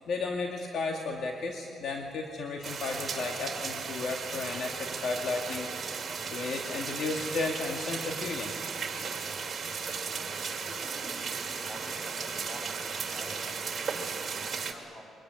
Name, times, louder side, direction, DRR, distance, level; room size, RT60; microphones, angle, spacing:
voice 1, 0.1-5.7 6.3-8.5, left 3 dB, 65° left, 1 dB, 2.2 m, -34 dB
sound 1, 2.6-14.7, right 5 dB, 45° right, 2.6 m, -36 dB
voice 2, 10.2-14.0 14.3-15.1, equal, 20° left, 0 dB, 7.9 m, -48 dB
23.5 x 20.0 x 9.6 m, 2.4 s
cardioid pair, 90°, 0 cm